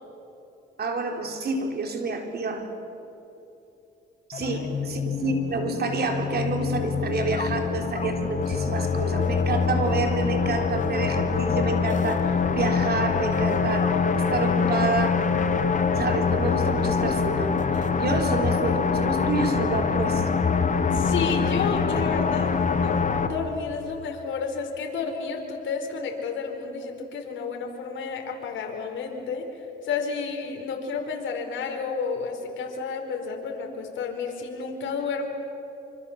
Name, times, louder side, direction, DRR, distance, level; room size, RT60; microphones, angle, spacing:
voice 1, 0.8-2.7 4.3-15.3 16.0-20.3, right 3 dB, 55° right, 4 dB, 4.0 m, -29 dB
sound 1, 4.3-23.3, left 5 dB, 40° left, 1.8 m, -24 dB
voice 2, 20.9-29.4 29.8-35.3, left 5 dB, 75° left, 3 dB, 4.4 m, -31 dB
26.0 x 25.5 x 7.3 m, 3.0 s
cardioid pair, 90°, 20 cm